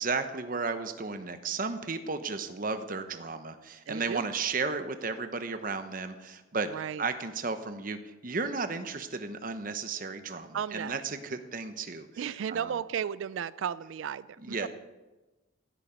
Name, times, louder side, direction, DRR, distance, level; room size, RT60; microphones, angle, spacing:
voice 1, 0.0-6.7 7.0-12.7 14.4-14.7, right 4 dB, 40° right, 9 dB, 0.9 m, -34 dB
voice 2, 3.9-4.3 6.7-7.0 10.5-11.0 12.2-14.7, right 8 dB, 70° right, 17 dB, 0.3 m, -34 dB
15.5 x 9.1 x 5.2 m, 1.1 s
head